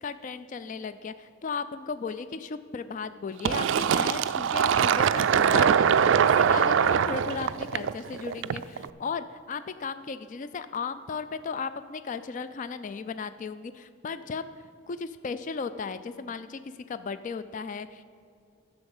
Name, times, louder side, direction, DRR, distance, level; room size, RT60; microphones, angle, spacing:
voice 1, 0.0-14.4 14.9-18.0, left 5 dB, 35° left, 13 dB, 0.3 m, -36 dB
Fill (with liquid), 3.4-8.8, right 7 dB, 60° right, 0.3 m, -23 dB
12.0 x 6.8 x 7.1 m, 2.4 s
head